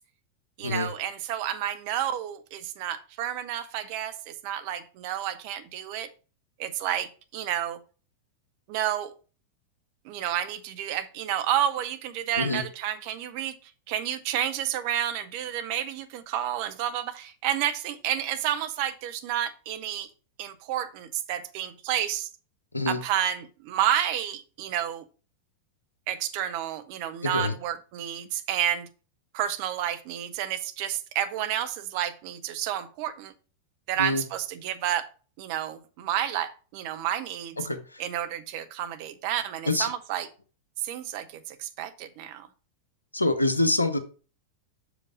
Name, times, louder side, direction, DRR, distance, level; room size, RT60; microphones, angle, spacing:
voice 1, 0.6-6.1 6.6-7.8 8.7-9.1 10.0-20.1 20.4-22.3 22.9-25.1 26.1-28.9 29.3-33.3 33.9-35.1 35.4-37.7 38.0-40.3 40.8-42.5, right 11 dB, 45° right, 0.8 m, -30 dB
voice 2, 43.1-44.0, left 2 dB, 85° left, 0.8 m, -25 dB
6.3 x 5.0 x 5.0 m
figure-of-eight pair, 90°, 0 cm